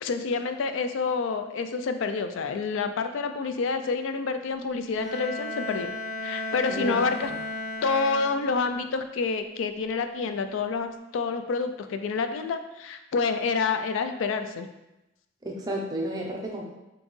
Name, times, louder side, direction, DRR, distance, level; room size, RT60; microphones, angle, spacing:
voice 1, 0.0-5.9 6.2-7.3 7.8-14.7, left 4 dB, 75° left, 8 dB, 0.3 m, -28 dB
Bowed string instrument, 5.0-8.7, left 2 dB, ahead, 1.0 m, -34 dB
voice 2, 6.7-7.0 15.4-16.6, right 1 dB, 20° right, -1 dB, 0.6 m, -32 dB
4.2 x 2.9 x 3.1 m, 0.96 s
head